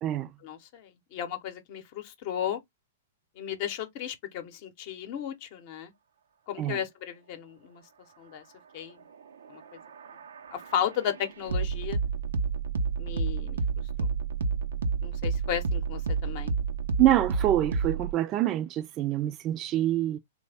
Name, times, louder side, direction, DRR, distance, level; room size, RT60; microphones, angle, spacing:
voice 1, 0.4-2.6 3.4-5.9 6.5-7.8 8.2-8.4 8.7-9.0 9.5-9.6 10.5-12.0 13.0-13.6 14.0-14.1 15.0-16.5, left 9 dB, 50° left, 0.7 m, -34 dB
sound 1, 9.4-18.1, right 5 dB, 80° right, 0.5 m, -30 dB
voice 2, 17.0-20.2, right 13 dB, 30° right, 0.4 m, -26 dB
3.2 x 2.1 x 3.3 m
hypercardioid pair, 130°, 0 cm